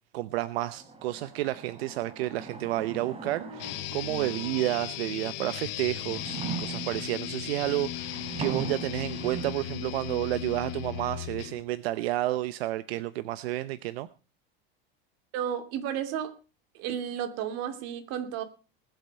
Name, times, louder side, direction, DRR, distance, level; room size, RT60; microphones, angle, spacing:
voice 1, 0.1-14.1, right 16 dB, 85° right, 14 dB, 0.9 m, -31 dB
sound 1, 0.7-5.1 5.6-9.5, right 4 dB, 20° right, 3.4 m, -40 dB
sound 2, 3.6-11.6, left 12 dB, 75° left, 1.8 m, -37 dB
voice 2, 15.3-16.3 16.7-18.4, right 9 dB, 55° right, 9 dB, 2.7 m, -32 dB
20.5 x 8.0 x 5.4 m, 0.34 s
supercardioid pair, 130°, 30 cm